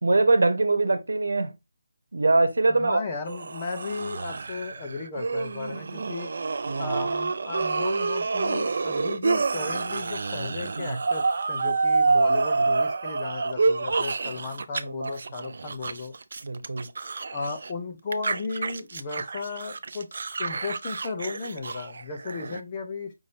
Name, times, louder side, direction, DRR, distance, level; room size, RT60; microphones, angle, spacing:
voice 1, 0.0-1.5 2.1-3.0 6.7-7.1 10.8-11.0 12.3-12.7 14.8-15.5 16.4-16.9, right 3 dB, 75° right, 1.0 m, -24 dB
voice 2, 2.7-6.3 6.8-16.1 17.3-20.1 20.4-23.1, left 4 dB, 15° left, 0.5 m, -35 dB
sound 1, 3.3-14.8 15.1-17.7 18.1-22.6, right 4 dB, 40° right, 0.4 m, -28 dB
5.3 x 2.7 x 3.2 m
hypercardioid pair, 180°, 0 cm